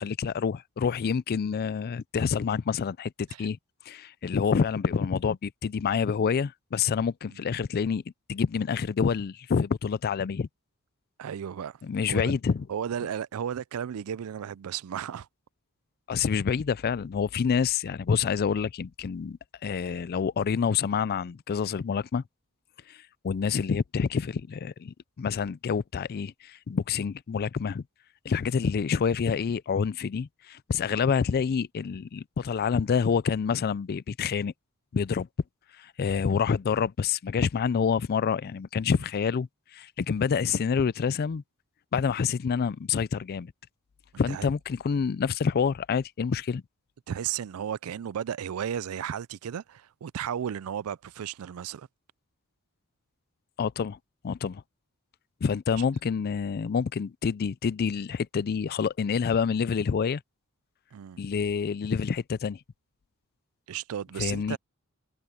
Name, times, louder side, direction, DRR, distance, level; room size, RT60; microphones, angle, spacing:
voice 1, 0.0-3.6 3.9-8.0 8.3-10.5 11.8-12.6 16.1-22.2 22.9-27.8 28.2-34.5 34.9-35.3 35.8-41.4 41.9-43.5 44.2-46.6 53.6-54.0 54.2-54.6 55.4-60.2 61.2-62.6 64.2-64.6, left 6 dB, 45° left, 0.4 m, -27 dB
voice 2, 11.2-11.8 12.1-12.3 12.7-15.3 16.1-16.2 30.9-31.1 44.3-44.5 44.9-45.0 47.1-51.9 60.9-61.2 63.7-64.6, right 9 dB, 70° right, 0.4 m, -34 dB
head